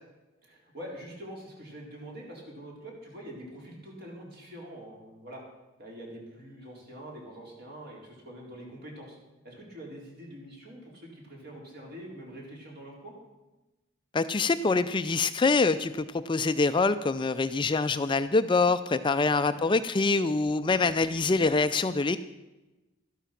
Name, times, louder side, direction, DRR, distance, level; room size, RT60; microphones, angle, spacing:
voice 1, 0.4-5.4 5.8-9.2 9.4-13.1 19.2-19.6, right 1 dB, 50° right, -1 dB, 4.1 m, -45 dB
voice 2, 14.1-22.2, left 3 dB, 25° left, 11 dB, 0.4 m, -25 dB
13.0 x 12.0 x 5.8 m, 1.1 s
head